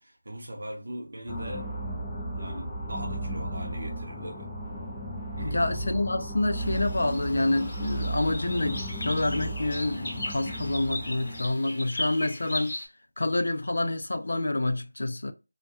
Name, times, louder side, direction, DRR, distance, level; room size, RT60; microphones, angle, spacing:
voice 1, 0.0-1.7 2.3-4.5 5.4-5.6, right 1 dB, 65° right, 0.7 m, -39 dB
sound 1, 1.3-11.5, right 1 dB, ahead, 0.4 m, -35 dB
voice 2, 5.4-12.7 13.2-15.3, left 2 dB, 70° left, 0.4 m, -28 dB
sound 2, 6.6-12.9, left 1 dB, 30° left, 0.7 m, -38 dB
2.2 x 2.2 x 2.6 m
figure-of-eight pair, 175°, 0 cm